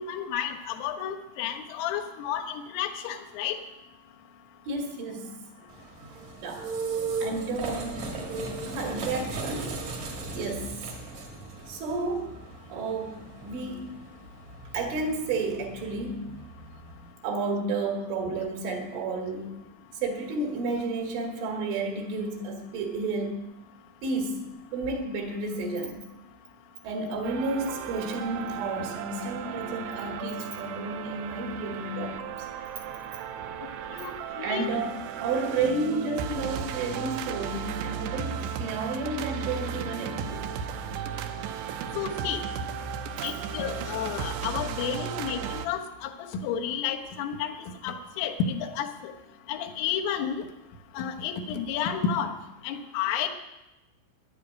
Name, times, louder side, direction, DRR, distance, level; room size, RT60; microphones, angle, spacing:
voice 1, 0.0-3.6 33.9-34.8 41.9-42.4 43.2-46.1 46.4-47.5 47.8-49.1 49.5-50.4 51.0-52.3 52.6-53.3, left 8 dB, 80° left, 4 dB, 3.7 m, -31 dB
voice 2, 4.7-5.7 6.0-6.8 7.2-9.8 10.3-10.8 11.7-12.4 12.7-13.9 14.7-16.4 17.2-19.7 19.9-23.4 24.0-24.4 24.7-26.1 26.8-32.5 33.4-33.5 34.4-40.5 43.2-43.4, right 3 dB, 70° right, 2 dB, 4.5 m, -32 dB
sound 1, 5.7-17.1, right 4 dB, 50° right, 2.4 m, -37 dB
Eyes (Instrumental), 27.2-45.7, right 7 dB, 85° right, 2.5 m, -35 dB
11.0 x 10.0 x 9.3 m, 0.98 s
omnidirectional pair, 5.9 m